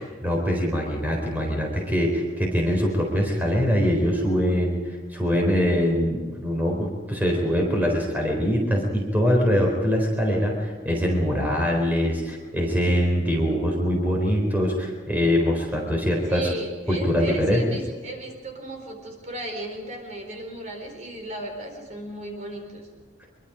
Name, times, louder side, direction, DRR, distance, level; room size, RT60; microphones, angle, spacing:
voice 1, 0.0-4.8 5.1-16.5 16.9-17.6, equal, 10° right, 0 dB, 4.1 m, -23 dB
voice 2, 16.3-22.9, right 1 dB, 40° right, 3 dB, 4.2 m, -35 dB
24.5 x 24.0 x 5.1 m, 1.5 s
head